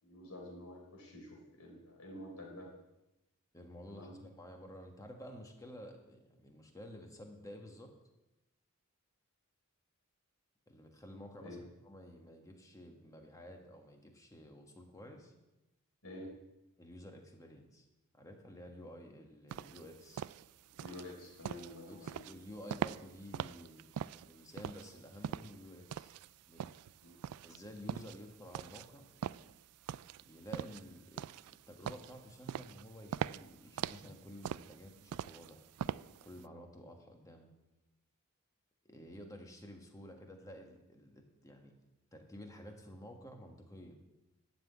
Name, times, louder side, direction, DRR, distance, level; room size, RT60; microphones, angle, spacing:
voice 1, 0.0-2.7 3.9-4.1 11.4-11.6 16.0-16.3 20.6-22.2 27.0-27.2, left 1 dB, 75° left, 0 dB, 4.0 m, -49 dB
voice 2, 3.5-7.9 10.7-15.3 16.8-17.8 18.1-20.2 21.9-23.8 24.1-26.1 26.5-26.7 27.4-29.1 30.2-31.3 31.7-35.6 36.2-37.5 38.8-41.7 42.1-44.0, equal, 15° left, 3 dB, 1.5 m, -52 dB
sound 1, 19.5-36.4, right 9 dB, 85° right, 0.3 m, -42 dB
12.0 x 5.9 x 8.6 m, 0.96 s
head